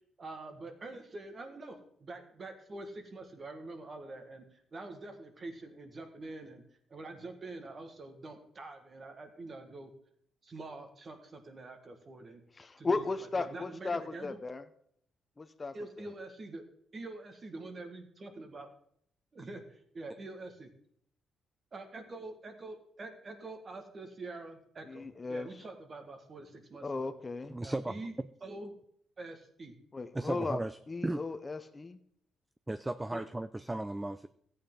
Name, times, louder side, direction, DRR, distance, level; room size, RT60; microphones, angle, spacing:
voice 1, 0.2-6.6 6.9-9.9 10.4-12.4 12.8-13.0 13.3-14.4 15.7-16.6 16.9-18.7 19.3-20.7 21.7-27.1 27.6-28.1 28.4-28.7 29.2-29.8 33.1-33.2, right 2 dB, 35° right, 6 dB, 1.6 m, -45 dB
voice 2, 12.6-14.6 15.4-15.8 24.9-25.5 26.8-27.6 29.9-30.6 30.9-32.0, left 3 dB, 25° left, 10 dB, 0.7 m, -36 dB
voice 3, 27.5-27.9 30.1-30.8 31.0-31.2 32.7-34.3, right 2 dB, 15° right, 13 dB, 0.3 m, -35 dB
14.0 x 8.6 x 3.8 m, 0.67 s
cardioid pair, 95°, 0 cm